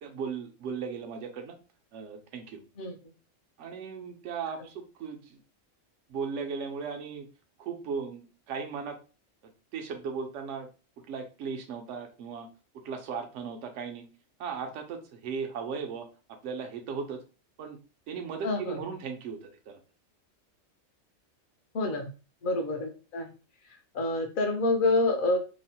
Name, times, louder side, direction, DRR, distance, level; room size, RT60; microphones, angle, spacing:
voice 1, 0.0-1.6 1.9-2.6 3.6-5.4 6.1-7.3 7.6-9.0 9.7-10.7 11.0-12.5 12.7-14.1 14.4-16.1 16.4-17.2 17.6-17.8 18.1-19.8, right 6 dB, 75° right, 4 dB, 0.9 m, -37 dB
voice 2, 18.4-18.8 21.7-22.1 22.4-23.3 23.9-25.4, left 2 dB, 50° left, 5 dB, 0.7 m, -27 dB
3.0 x 2.1 x 2.7 m, 0.33 s
omnidirectional pair, 1.3 m